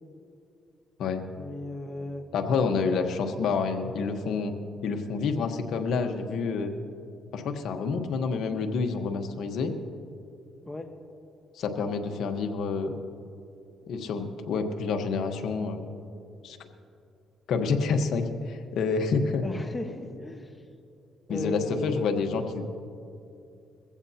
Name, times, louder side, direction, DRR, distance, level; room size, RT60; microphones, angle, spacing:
voice 1, 1.4-2.3 10.6-10.9 19.4-20.6 21.3-21.9, left 2 dB, 20° left, 5 dB, 1.2 m, -36 dB
voice 2, 2.3-4.5 4.8-6.7 7.3-9.7 11.5-12.9 13.9-15.8 16.4-16.6 17.5-19.4 21.3-22.6, left 4 dB, 75° left, 5 dB, 1.2 m, -28 dB
22.0 x 15.5 x 2.9 m, 2.5 s
cardioid pair, 90°, 0 cm